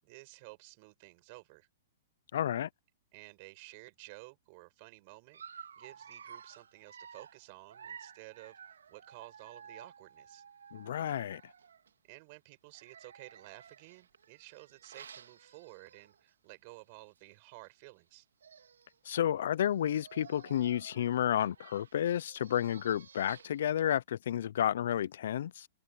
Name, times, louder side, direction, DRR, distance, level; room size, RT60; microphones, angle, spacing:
voice 1, 0.0-1.7 3.1-10.4 12.1-18.3, right 27 dB, 45° right, 7.3 m, -53 dB
voice 2, 2.3-2.7 10.7-11.4 19.0-25.7, left 10 dB, 65° left, 0.8 m, -31 dB
Dog, 5.3-11.9 12.7-16.3 16.7-16.9 17.2-17.3 18.1-18.2 18.4-19.0 19.6-23.7, right 7 dB, 80° right, 2.7 m, -53 dB
open air
hypercardioid pair, 120°, 0 cm